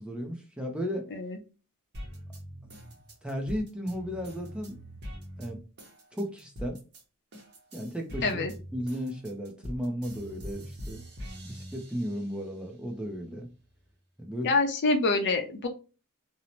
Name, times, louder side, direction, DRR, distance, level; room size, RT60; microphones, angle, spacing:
voice 1, 0.0-1.1 3.2-4.8 5.4-5.6 6.1-6.8 7.7-8.4 8.7-11.0 11.4-13.5 14.2-14.5, equal, 5° right, 0.4 m, -34 dB
sound 1, 1.9-7.0 7.3-12.5 13.0-13.9, equal, 50° right, 0.9 m, -43 dB
voice 2, 8.2-8.5 14.4-15.7, left 3 dB, 55° left, 0.5 m, -26 dB
2.6 x 2.0 x 2.9 m
head